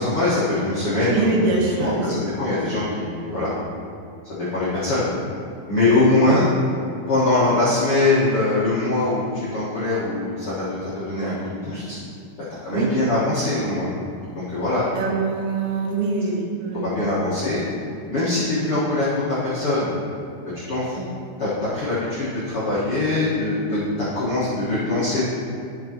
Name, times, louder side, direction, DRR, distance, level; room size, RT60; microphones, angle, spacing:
voice 1, 0.0-3.5 4.3-5.1 5.7-6.5 7.1-12.0 12.6-13.9 14.3-14.8 16.8-17.6 18.1-19.9 20.5-21.1 21.4-25.3, left 2 dB, 85° left, -11 dB, 1.2 m, -22 dB
voice 2, 1.1-2.2 12.7-12.9 15.0-17.0, right 3 dB, 70° right, -2 dB, 2.8 m, -23 dB
11.0 x 6.7 x 3.0 m, 2.5 s
omnidirectional pair, 5.3 m